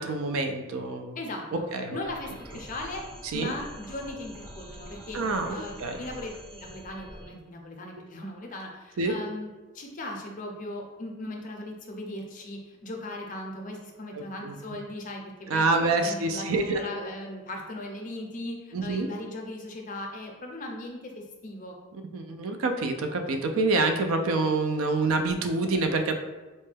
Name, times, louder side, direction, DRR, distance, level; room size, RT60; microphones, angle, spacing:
voice 1, 0.0-1.2 1.5-2.0 3.2-3.5 5.1-5.5 5.8-6.0 9.0-9.1 14.2-14.5 15.5-16.8 18.7-19.1 22.1-26.1, right 3 dB, 70° right, 6 dB, 0.4 m, -27 dB
voice 2, 1.2-1.7 1.9-3.0 3.3-5.2 5.5-9.5 9.7-15.6 16.0-21.8, left 1 dB, 35° left, 1 dB, 0.5 m, -38 dB
sound 1, 2.0-7.3, equal, 10° right, 0.5 m, -45 dB
4.1 x 2.2 x 3.3 m, 1.2 s
head